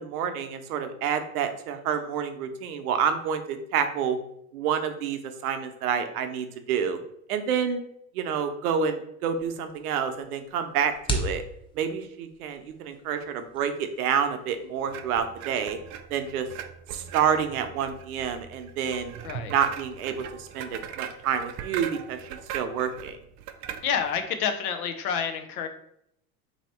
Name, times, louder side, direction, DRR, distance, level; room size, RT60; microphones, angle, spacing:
voice 1, 0.1-4.2 4.5-7.0 7.3-7.8 8.1-11.4 11.8-15.8 16.1-16.5 16.9-19.1 19.5-23.2, right 7 dB, 80° right, 7 dB, 0.7 m, -28 dB
sound 1, 9.3-15.6, equal, 10° left, 0.6 m, -38 dB
sound 2, 14.9-24.3, right 9 dB, 45° right, 0.4 m, -40 dB
voice 2, 23.8-25.7, left 7 dB, 85° left, 7 dB, 0.7 m, -28 dB
3.0 x 2.8 x 4.3 m, 0.73 s
hypercardioid pair, 95°, 44 cm